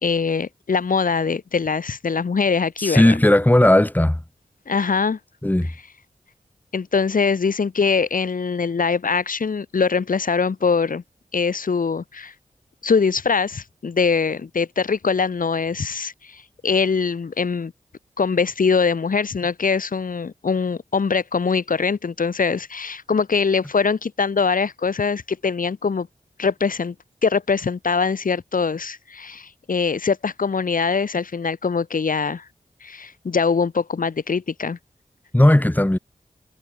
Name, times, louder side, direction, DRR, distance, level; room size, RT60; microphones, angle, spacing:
voice 1, 0.0-3.1 4.7-5.2 6.7-11.0 11.3-12.3 12.8-17.7 18.2-26.1 26.4-26.9 27.2-32.5 32.8-34.8, left 5 dB, 70° left, 3.6 m, -22 dB
voice 2, 2.8-4.2 5.4-5.7 35.3-36.0, left 1 dB, 10° left, 4.2 m, -16 dB
wide cardioid pair, 80°, 14 cm